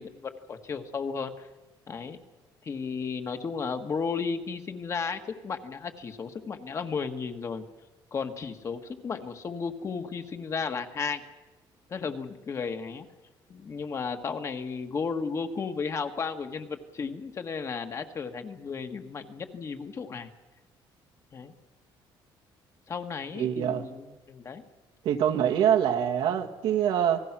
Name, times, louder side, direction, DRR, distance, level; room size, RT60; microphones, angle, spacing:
voice 1, 0.0-1.5 1.9-2.2 2.6-7.7 8.1-11.2 11.9-13.1 13.5-20.3 21.3-21.5 22.9-24.6, left 5 dB, 35° left, 6 dB, 1.6 m, -34 dB
voice 2, 23.4-23.8 25.0-27.2, right 9 dB, 80° right, 2 dB, 2.2 m, -25 dB
28.5 x 19.0 x 6.1 m, 1.1 s
cardioid pair, 150°, 9 cm